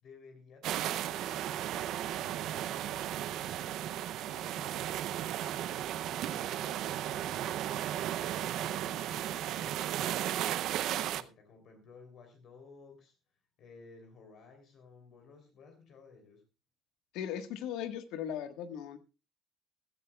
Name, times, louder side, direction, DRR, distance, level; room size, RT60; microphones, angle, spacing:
voice 1, 0.0-7.1 8.4-13.2 13.6-16.4, left 4 dB, 50° left, 5 dB, 3.1 m, -56 dB
sound 1, 0.6-11.2, right 12 dB, 60° right, 0.5 m, -35 dB
voice 2, 17.1-19.0, left 9 dB, 75° left, 8 dB, 1.4 m, -38 dB
16.0 x 13.5 x 2.3 m, 0.30 s
cardioid pair, 155°, 0 cm